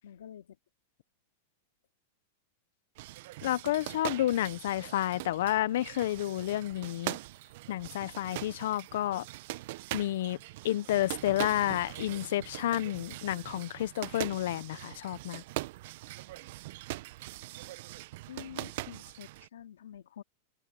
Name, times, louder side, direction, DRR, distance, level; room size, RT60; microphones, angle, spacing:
voice 1, 0.0-0.6 18.3-20.2, left 10 dB, 85° left, 2.3 m, -48 dB
sound 1, 3.0-19.5, right 18 dB, 60° right, 0.8 m, -42 dB
voice 2, 3.4-7.2 7.7-9.3 9.9-10.4 10.6-15.4, left 13 dB, 70° left, 0.7 m, -30 dB
open air
hypercardioid pair, 125°, 0 cm